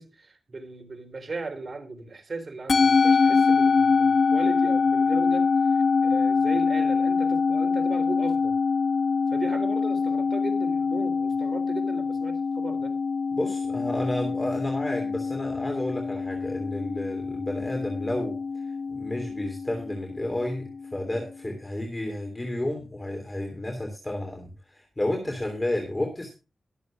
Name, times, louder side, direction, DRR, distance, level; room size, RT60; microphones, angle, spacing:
voice 1, 0.0-8.5 9.3-12.9 25.2-25.4, right 3 dB, 40° right, 4 dB, 3.7 m, -37 dB
Musical instrument, 2.7-21.2, left 5 dB, 60° left, 1.4 m, -24 dB
voice 2, 13.3-18.4 18.9-26.3, left 1 dB, 20° left, 2 dB, 3.2 m, -31 dB
22.5 x 8.0 x 2.4 m, 0.30 s
wide cardioid pair, 125°, 0 cm